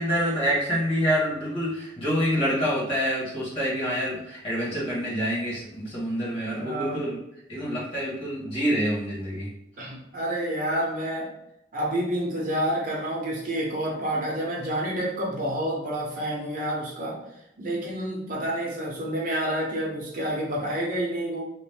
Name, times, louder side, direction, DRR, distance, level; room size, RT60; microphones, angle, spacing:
voice 1, 0.0-7.2 7.5-9.5, equal, 30° left, -7 dB, 1.3 m, -27 dB
voice 2, 6.5-7.0 9.8-11.3 11.7-17.2 17.6-21.4, right 1 dB, 50° right, -3 dB, 0.7 m, -29 dB
3.0 x 2.0 x 3.3 m, 0.80 s
head